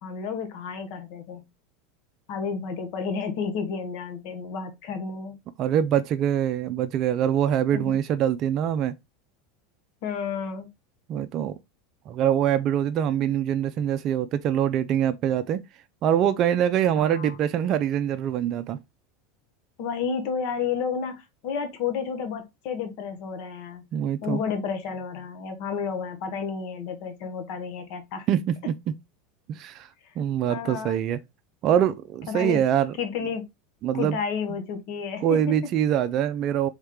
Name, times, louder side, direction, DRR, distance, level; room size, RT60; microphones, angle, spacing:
voice 1, 0.0-1.4 2.3-5.4 7.7-8.0 10.0-10.7 17.0-17.4 19.8-23.9 24.2-28.3 30.5-31.0 32.3-32.6 33.0-33.4 33.9-35.5, left 6 dB, 60° left, 1.0 m, -31 dB
voice 2, 5.6-8.9 11.1-11.6 12.1-15.6 16.0-18.8 23.9-24.4 28.3-29.0 29.5-29.9 30.2-31.2 31.6-32.9 33.8-34.2 35.2-36.7, right 10 dB, 45° right, 0.4 m, -24 dB
3.6 x 3.2 x 3.5 m
hypercardioid pair, 90°, 0 cm